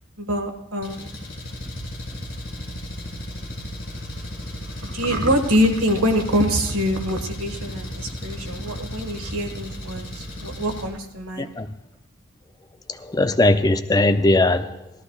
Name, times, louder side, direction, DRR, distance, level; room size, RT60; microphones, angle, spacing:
voice 1, 0.2-1.1 4.8-11.5, equal, 90° right, 1.6 m, -24 dB
Engine, 0.8-10.8, left 1 dB, 45° left, 3.4 m, -36 dB
sound 1, 1.3-10.9, right 1 dB, ahead, 3.7 m, -41 dB
voice 2, 12.9-14.9, left 2 dB, 20° left, 0.4 m, -19 dB
18.0 x 13.5 x 2.4 m
head